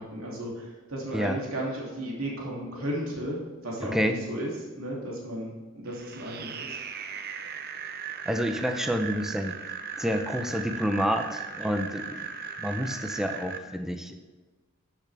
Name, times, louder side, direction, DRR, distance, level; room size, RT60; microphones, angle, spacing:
voice 1, 0.0-3.4 3.6-4.5 4.8-6.8, right 1 dB, 75° right, -3 dB, 2.8 m, -34 dB
sound 1, 5.9-13.6, right 6 dB, 45° right, 0.7 m, -38 dB
voice 2, 8.2-9.6 10.0-12.3 12.6-14.2, equal, ahead, 5 dB, 0.7 m, -28 dB
12.5 x 8.5 x 3.5 m, 1.3 s
head